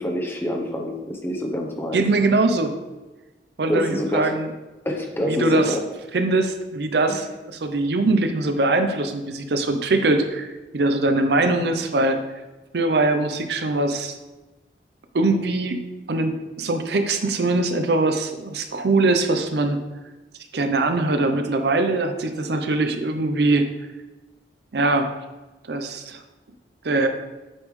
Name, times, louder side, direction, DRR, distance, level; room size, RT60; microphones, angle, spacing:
voice 1, 0.0-2.0 3.7-4.3 4.8-5.8 7.1-7.2, left 1 dB, 15° left, 1 dB, 0.8 m, -26 dB
voice 2, 1.9-2.7 3.6-4.5 5.2-5.7 6.1-12.2 12.7-14.2 15.1-15.8 16.1-19.8 20.5-23.7 24.7-25.1 25.7-26.2 26.8-27.1, right 2 dB, 65° right, 7 dB, 0.6 m, -22 dB
8.4 x 5.4 x 3.2 m, 1.1 s
head